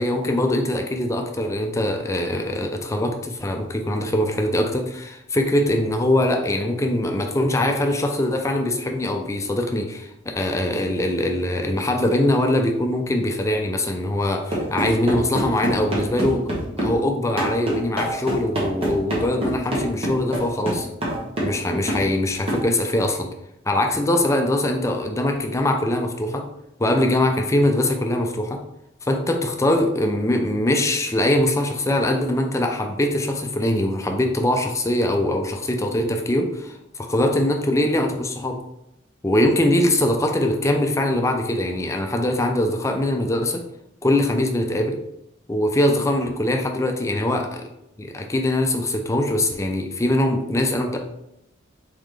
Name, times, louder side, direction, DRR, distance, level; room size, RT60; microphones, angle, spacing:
voice 1, 0.0-10.1 10.4-20.9 21.4-23.3 23.7-26.5 26.8-28.6 29.1-38.6 39.2-43.6 44.0-45.0 45.5-47.7 48.0-51.0, left 1 dB, 15° left, 3 dB, 0.4 m, -22 dB
sound 1, 14.5-17.0 17.4-21.6 21.9-22.1 22.5-22.7, right 1 dB, 30° right, 1.3 m, -25 dB
4.0 x 3.9 x 3.2 m, 0.82 s
head